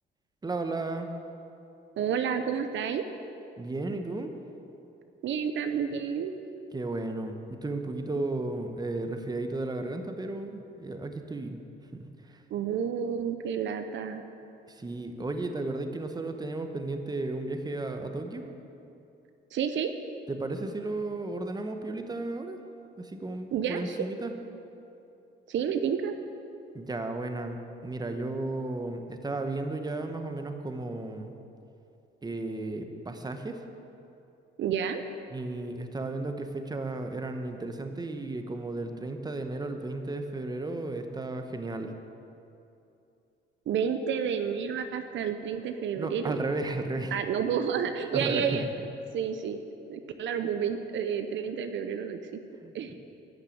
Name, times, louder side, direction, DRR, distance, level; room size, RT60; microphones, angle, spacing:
voice 1, 0.4-1.1 3.6-4.3 6.7-11.6 11.9-12.1 12.3-12.4 14.7-18.5 20.3-22.6 23.0-24.3 26.7-31.3 32.2-33.6 35.3-41.9 46.0-47.1 48.1-48.6 52.6-52.9, right 2 dB, 20° right, 6 dB, 1.0 m, -34 dB
voice 2, 2.0-3.0 5.2-6.3 12.5-14.2 19.5-19.9 23.5-24.1 25.5-26.1 34.6-35.0 43.7-46.4 47.1-48.7 49.1-49.6 49.9-52.2 52.7-52.9, right 7 dB, 70° right, 8 dB, 0.7 m, -30 dB
11.5 x 6.4 x 8.5 m, 2.7 s
cardioid pair, 90°, 20 cm